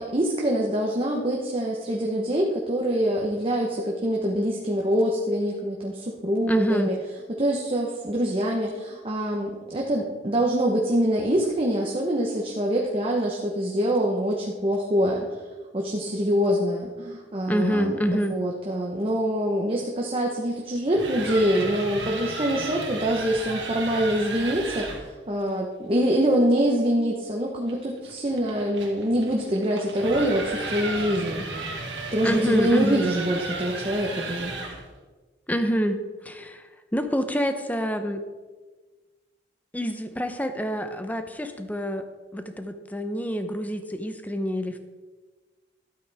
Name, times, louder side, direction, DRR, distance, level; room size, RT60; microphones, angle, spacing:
voice 1, 0.0-7.0 7.4-15.2 15.7-31.4 32.1-34.5, equal, 30° right, -1 dB, 1.0 m, -25 dB
voice 2, 6.5-6.9 17.5-18.4 32.2-33.1 35.5-36.0 36.2-36.6 36.9-38.2 39.7-42.1 42.3-44.8, equal, 10° left, 7 dB, 0.7 m, -27 dB
sound 1, 20.8-25.1 27.7-34.9, right 3 dB, 85° right, 1.8 m, -34 dB
12.5 x 8.4 x 3.5 m, 1.3 s
head